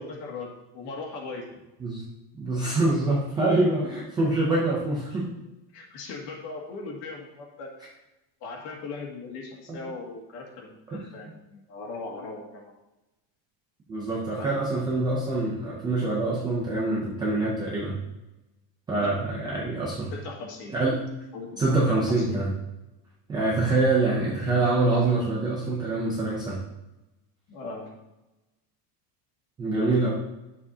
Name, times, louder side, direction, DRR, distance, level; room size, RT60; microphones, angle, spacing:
voice 1, 0.0-1.5 4.5-4.6 5.7-7.7 8.4-12.7 14.4-14.8 18.9-19.6 20.1-20.7 21.3-22.4 23.7-23.9 27.5-27.9, left 3 dB, 50° left, -1 dB, 2.0 m, -39 dB
voice 2, 2.4-5.3 10.9-11.0 13.9-18.0 18.9-20.1 20.7-21.0 21.6-22.5 23.3-26.6 29.6-30.1, right 2 dB, 10° right, -6 dB, 0.3 m, -25 dB
10.5 x 7.2 x 2.7 m, 0.98 s
cardioid pair, 175°, 50 cm